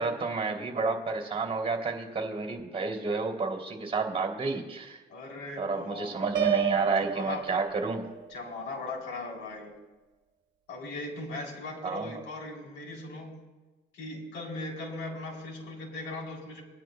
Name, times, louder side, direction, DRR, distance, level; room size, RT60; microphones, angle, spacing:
voice 1, 0.0-5.0 5.6-8.0 11.8-12.1, right 4 dB, 30° right, 3 dB, 2.9 m, -30 dB
voice 2, 5.1-6.1 6.4-6.6 7.0-7.5 8.3-9.7 10.7-13.4 13.9-16.6, left 2 dB, 80° left, -2 dB, 3.6 m, -39 dB
Piano, 6.3-8.3, right 10 dB, 65° right, 1.1 m, -30 dB
22.5 x 10.5 x 2.2 m, 1.2 s
cardioid pair, 90°, 20 cm